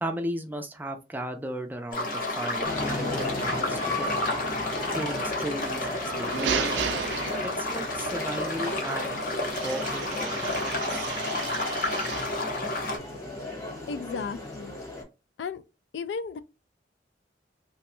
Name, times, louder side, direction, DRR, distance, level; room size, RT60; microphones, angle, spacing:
voice 1, 0.0-4.2 4.9-6.6 7.4-9.2 9.5-11.5, right 1 dB, 10° right, 0.4 m, -36 dB
sound 1, 1.9-13.0, left 2 dB, 50° left, 0.8 m, -31 dB
sound 2, 2.6-15.0, left 1 dB, 20° left, 1.1 m, -36 dB
sound 3, 6.0-7.9 9.5-12.4, right 6 dB, 80° right, 0.5 m, -33 dB
voice 2, 13.9-14.8 15.4-15.6 15.9-16.4, left 5 dB, 75° left, 0.3 m, -34 dB
2.9 x 2.2 x 3.0 m
head